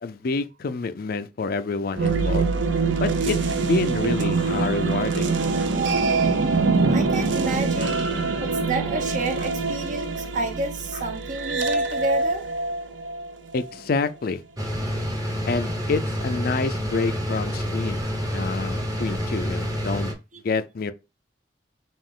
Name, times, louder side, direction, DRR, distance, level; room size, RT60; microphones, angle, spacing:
voice 1, 0.0-2.5 3.0-5.7 7.8-7.9 13.5-14.4 15.5-18.0 18.3-20.1 20.4-20.9, left 4 dB, 55° left, 0.4 m, -28 dB
sound 1, 1.9-13.8, right 3 dB, 85° right, 0.6 m, -24 dB
voice 2, 6.9-8.0 8.4-12.5 20.3-20.4, right 2 dB, 45° right, 0.7 m, -30 dB
sound 2, 14.6-20.1, equal, 20° right, 0.9 m, -28 dB
5.4 x 2.5 x 3.6 m
head